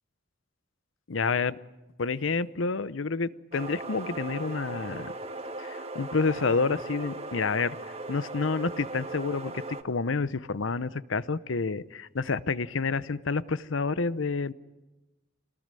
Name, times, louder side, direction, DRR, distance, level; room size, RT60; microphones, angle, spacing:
voice 1, 1.1-1.6 2.0-5.1 5.6-14.5, left 4 dB, 75° left, 17 dB, 0.8 m, -29 dB
sound 1, 3.5-9.8, right 2 dB, 30° right, 1.5 m, -38 dB
26.5 x 19.0 x 9.1 m, 1.1 s
head